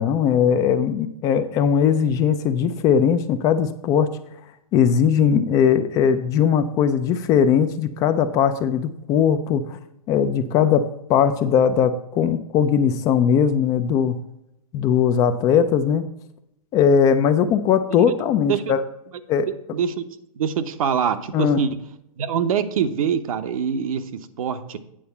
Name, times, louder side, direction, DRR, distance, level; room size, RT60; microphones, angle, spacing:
voice 1, 0.0-4.1 4.7-9.8 10.1-14.1 14.7-16.1 16.7-18.8 19.3-19.5 21.3-21.6, left 7 dB, 20° left, 10 dB, 0.3 m, -19 dB
voice 2, 19.7-20.0 20.4-21.8 22.2-24.8, right 7 dB, 70° right, 10 dB, 0.8 m, -24 dB
8.8 x 4.3 x 7.0 m, 0.82 s
hypercardioid pair, 150°, 19 cm